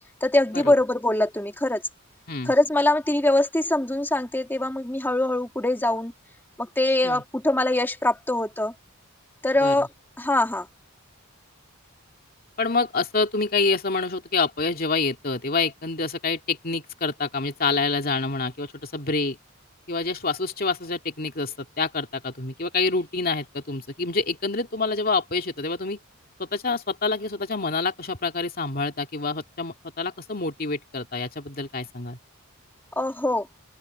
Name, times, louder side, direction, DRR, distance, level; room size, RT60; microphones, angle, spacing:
voice 1, 0.2-1.8 2.5-6.1 6.6-8.7 9.4-9.9 10.2-10.7 33.0-33.5, left 1 dB, 10° left, 2.2 m, -23 dB
voice 2, 12.6-19.4 19.9-26.0 26.4-32.2, left 4 dB, 45° left, 2.3 m, -27 dB
open air
head